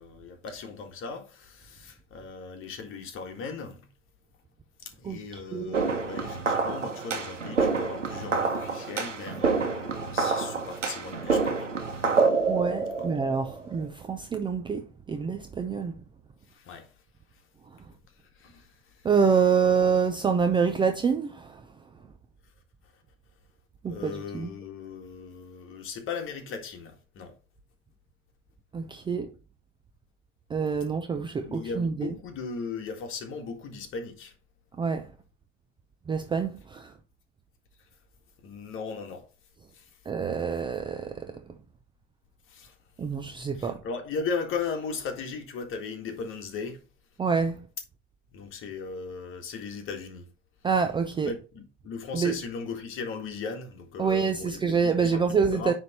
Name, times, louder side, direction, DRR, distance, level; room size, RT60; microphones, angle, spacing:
voice 1, 0.0-3.9 4.8-12.3 12.9-13.2 16.5-16.9 18.4-19.1 23.9-27.4 31.1-34.3 38.4-39.3 39.7-39.9 42.5-42.7 43.5-46.8 48.3-50.3 51.3-55.7, left 5 dB, 35° left, 1.8 m, -37 dB
voice 2, 5.0-5.9 12.5-16.0 19.0-21.6 23.8-24.5 28.7-29.3 30.5-32.2 34.8-35.1 36.1-36.9 40.1-41.4 43.0-43.8 47.2-47.6 50.6-51.4 52.1-52.4 54.0-55.7, right 6 dB, 15° right, 0.6 m, -27 dB
sound 1, 5.7-13.9, right 4 dB, 85° right, 1.3 m, -27 dB
9.4 x 3.5 x 4.3 m
figure-of-eight pair, 85°, 36 cm